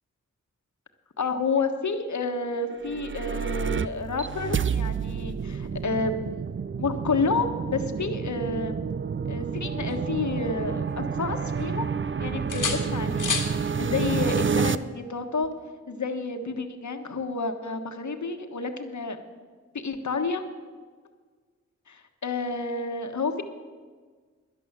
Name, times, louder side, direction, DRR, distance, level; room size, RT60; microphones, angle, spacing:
voice 1, 1.2-6.4 6.8-8.8 9.3-11.9 12.2-13.4 13.8-15.5 15.9-19.2 19.7-20.4 21.9-23.4, left 4 dB, 65° left, 7 dB, 1.4 m, -30 dB
sound 1, 2.7-14.8, right 6 dB, 40° right, 0.6 m, -29 dB
sound 2, 9.4-10.9 11.3-12.1 12.5-13.6 15.4-15.6, left 5 dB, 85° left, 1.7 m, -33 dB
11.5 x 10.5 x 7.4 m, 1.5 s
cardioid pair, 40°, 31 cm